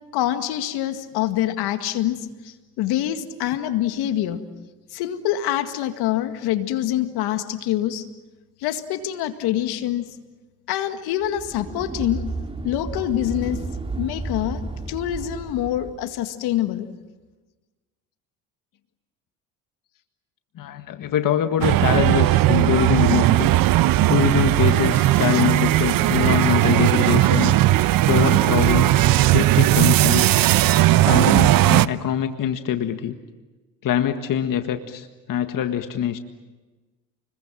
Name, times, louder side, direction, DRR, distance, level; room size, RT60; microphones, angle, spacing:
voice 1, 0.1-2.2 2.8-4.4 4.9-8.1 8.6-10.1 10.7-12.2 12.6-13.6 14.0-14.6 14.9-16.9, left 12 dB, 70° left, 8 dB, 2.1 m, -25 dB
sound 1, 11.2-16.1, right 3 dB, 15° right, 3.3 m, -32 dB
voice 2, 20.6-23.5 24.1-27.5 28.1-28.9 29.2-30.4 31.0-33.2 33.8-36.2, left 9 dB, 55° left, 7 dB, 1.7 m, -24 dB
sound 2, 21.6-31.9, right 15 dB, 60° right, 0.9 m, -17 dB
30.0 x 22.0 x 7.6 m, 1.2 s
supercardioid pair, 75°, 39 cm